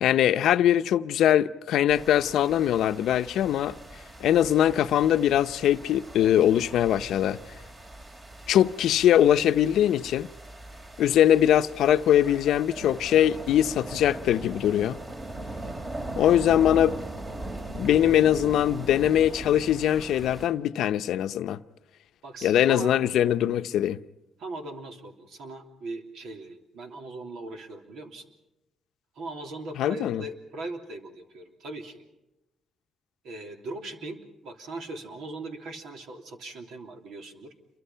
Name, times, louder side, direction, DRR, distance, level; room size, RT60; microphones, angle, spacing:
voice 1, 0.0-3.7 4.2-7.4 8.5-10.3 11.0-15.0 16.2-17.0 17.7-21.6 22.4-24.0 29.8-30.2, left 11 dB, 80° left, 0.7 m, -22 dB
sound 1, 1.9-20.5, right 1 dB, 35° right, 3.1 m, -40 dB
voice 2, 22.2-22.9 24.4-28.3 29.1-32.0 33.2-37.5, right 2 dB, 80° right, 3.2 m, -39 dB
28.0 x 23.5 x 5.7 m
cardioid pair, 90°, 0 cm